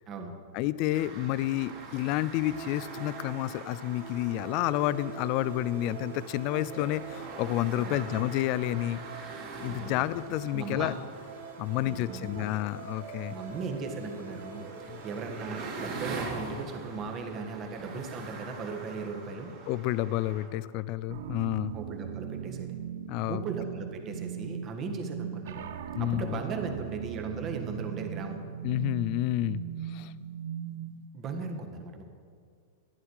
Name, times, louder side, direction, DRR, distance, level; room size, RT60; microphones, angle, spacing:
voice 1, 0.5-9.0 9.6-10.9 11.6-13.4 14.9-15.0 19.7-21.8 23.1-23.4 25.9-26.3 28.6-30.1, left 14 dB, 45° left, 17 dB, 0.4 m, -30 dB
sound 1, 0.9-20.5, right 3 dB, 50° right, 2.8 m, -44 dB
sound 2, 2.4-16.4, right 7 dB, 85° right, 1.9 m, -45 dB
voice 2, 7.7-8.1 9.6-10.0 10.5-10.9 11.8-12.5 13.3-19.5 21.7-22.8 23.3-28.4 31.1-32.0, right 4 dB, 30° right, 4 dB, 1.5 m, -38 dB
sound 3, 21.1-31.1, right 9 dB, 70° right, 0.6 m, -39 dB
11.0 x 10.0 x 4.8 m, 2.2 s
hypercardioid pair, 130°, 0 cm